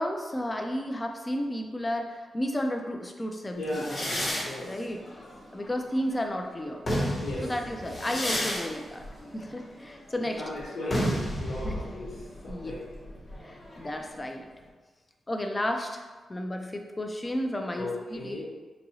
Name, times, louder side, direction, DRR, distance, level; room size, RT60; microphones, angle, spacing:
voice 1, 0.0-3.9 4.6-5.0 5.5-6.8 7.4-9.1 9.3-10.4 11.6-11.9 12.5-12.7 13.4-14.5 15.3-18.4, left 1 dB, 15° left, 4 dB, 0.3 m, -32 dB
voice 2, 3.6-4.7 7.1-7.5 10.2-12.1 12.4-12.8 17.8-18.4, left 1 dB, 75° left, -7 dB, 1.1 m, -36 dB
sound 1, 3.7-6.2 6.6-14.2, equal, 35° left, 0.8 m, -33 dB
4.0 x 2.7 x 2.7 m, 1.3 s
wide cardioid pair, 145°, 0 cm